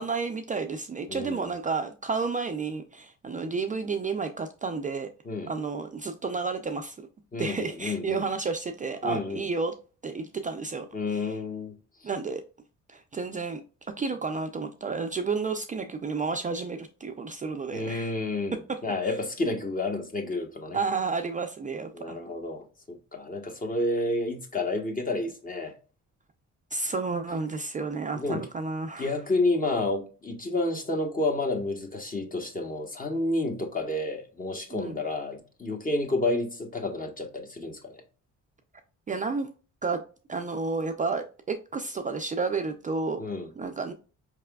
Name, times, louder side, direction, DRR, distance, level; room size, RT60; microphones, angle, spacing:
voice 1, 0.0-5.1 5.5-7.0 7.4-9.7 10.0-11.3 12.0-12.4 12.9-13.6 14.0-18.1 18.5-18.8 19.0-19.1 20.7-22.2 26.7-29.1 34.7-35.0 39.1-39.5 39.8-40.0 40.3-43.2 43.6-43.9, right 4 dB, 25° right, 0.4 m, -31 dB
voice 2, 1.1-1.4 5.3-5.5 7.3-8.2 9.0-9.5 10.9-11.8 12.0-12.1 17.7-18.6 18.8-20.8 21.9-25.8 28.2-28.4 29.0-38.0 43.2-43.5, left 2 dB, 30° left, 1.2 m, -30 dB
4.7 x 3.3 x 2.2 m
cardioid pair, 90°, 30 cm